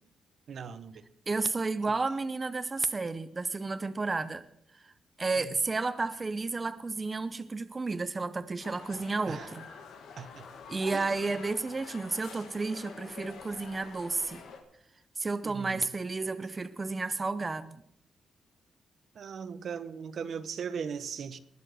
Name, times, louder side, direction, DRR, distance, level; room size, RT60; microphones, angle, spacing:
voice 1, 0.5-1.0 9.3-9.5 10.2-10.5 10.9-11.1 15.4-15.9 19.2-21.4, right 6 dB, 60° right, 0.8 m, -38 dB
voice 2, 1.3-4.4 4.7-4.9 5.2-9.7 10.7-14.4 15.2-17.8, right 3 dB, 25° right, 0.6 m, -32 dB
sound 1, 8.6-14.6, left 5 dB, 90° left, 2.0 m, -47 dB
19.5 x 7.1 x 6.2 m
cardioid pair, 115°, 0 cm